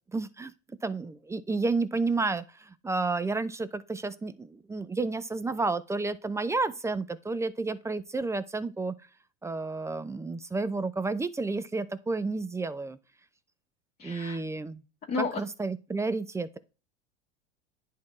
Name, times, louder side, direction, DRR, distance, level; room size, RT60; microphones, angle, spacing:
voice 1, 0.1-0.5 0.8-8.9 9.4-13.0 14.0-14.8 15.4-16.6, right 3 dB, 10° right, 0.4 m, -31 dB
voice 2, 14.0-14.4 15.1-15.3, left 4 dB, 25° left, 1.6 m, -32 dB
10.5 x 3.7 x 3.1 m
hypercardioid pair, 85°, 35 cm